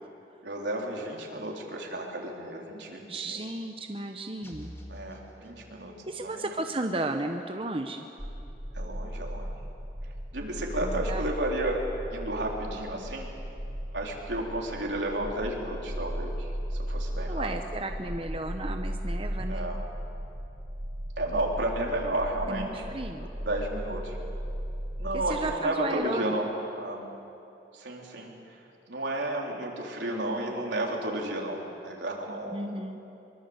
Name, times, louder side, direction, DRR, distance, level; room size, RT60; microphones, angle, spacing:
voice 1, 0.4-3.4 4.9-5.9 6.2-6.4 8.7-9.6 10.3-11.8 12.1-13.3 13.9-17.5 19.5-19.8 21.2-22.7 23.2-24.2 25.0-26.5 26.8-27.0 27.7-28.6 28.9-32.6, right 1 dB, 85° right, -1 dB, 4.0 m, -32 dB
voice 2, 3.1-4.8 6.1-8.1 10.8-11.3 17.2-19.7 22.5-23.3 25.1-26.3 32.5-33.0, right 2 dB, 30° right, 5 dB, 0.9 m, -34 dB
sound 1, 4.4-6.3, equal, 15° left, 2.0 m, -47 dB
sound 2, 8.2-25.6, equal, 50° right, 4.7 m, -36 dB
23.5 x 23.5 x 8.1 m, 2.8 s
head